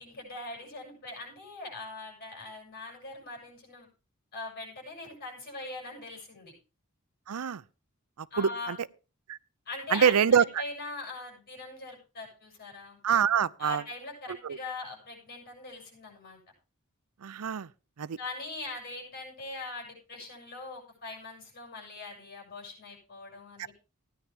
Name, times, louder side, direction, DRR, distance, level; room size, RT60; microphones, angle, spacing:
voice 1, 0.0-3.9 4.3-6.5 8.3-8.7 9.7-13.0 13.6-16.4 18.2-23.7, left 3 dB, 45° left, 7.4 m, -41 dB
voice 2, 7.3-7.6 8.2-8.8 9.3-9.4 9.9-10.6 13.0-13.8 14.3-14.6 17.2-17.7 18.0-18.2, right 7 dB, 90° right, 0.5 m, -25 dB
16.0 x 10.0 x 3.5 m
head